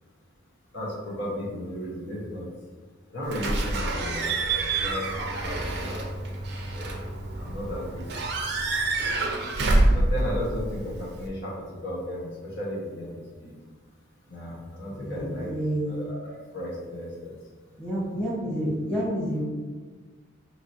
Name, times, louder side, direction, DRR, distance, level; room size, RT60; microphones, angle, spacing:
voice 1, 0.7-2.5 3.1-6.9 7.4-8.1 9.9-11.5 11.8-13.5 14.3-15.5 15.9-17.3, equal, 60° left, -6 dB, 1.3 m, -35 dB
Slam / Squeak / Alarm, 3.3-11.3, right 2 dB, 55° right, 0.5 m, -27 dB
voice 2, 14.9-16.0 17.8-19.4, equal, 5° left, -9 dB, 1.4 m, -29 dB
4.8 x 3.0 x 2.8 m, 1.4 s
head